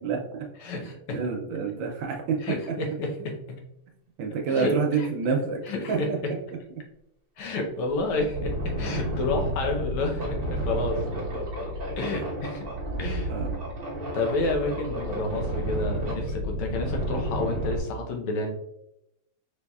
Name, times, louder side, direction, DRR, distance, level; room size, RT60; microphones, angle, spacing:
voice 1, 0.0-0.5 0.7-2.4 4.2-5.6 5.9-6.2 13.3-13.6, right 5 dB, 75° right, 2 dB, 1.2 m, -28 dB
voice 2, 0.6-1.2 2.4-3.6 4.5-5.1 5.7-6.3 7.4-11.0 12.0-12.7 13.0-13.3 14.1-18.5, left 2 dB, 80° left, 2 dB, 1.7 m, -30 dB
sound 1, 7.4-7.5 7.9-17.8, right 1 dB, 50° right, 0.5 m, -31 dB
5.2 x 3.3 x 2.3 m, 0.82 s
omnidirectional pair, 2.4 m